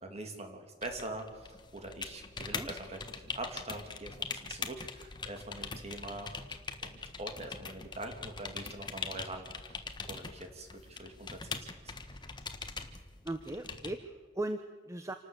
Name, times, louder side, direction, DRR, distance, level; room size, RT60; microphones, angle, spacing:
voice 1, 0.0-9.8 10.0-11.9, right 2 dB, 35° right, 4 dB, 3.0 m, -44 dB
sound 1, 0.8-13.9, left 4 dB, 25° left, 1.5 m, -42 dB
voice 2, 13.2-15.1, right 1 dB, 15° right, 8 dB, 0.9 m, -38 dB
27.5 x 12.5 x 8.4 m, 1.4 s
head